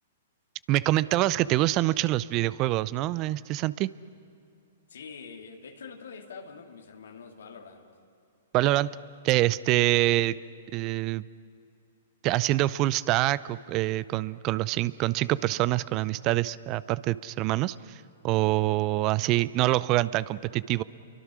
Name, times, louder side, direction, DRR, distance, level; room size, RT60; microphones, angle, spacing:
voice 1, 0.7-3.9 8.5-8.9 9.2-10.4 10.7-11.3 12.2-20.8, right 16 dB, 35° right, 19 dB, 0.6 m, -25 dB
voice 2, 4.9-7.9, left 5 dB, 75° left, 3 dB, 2.3 m, -45 dB
29.5 x 23.5 x 6.3 m, 2.5 s
hypercardioid pair, 120°, 0 cm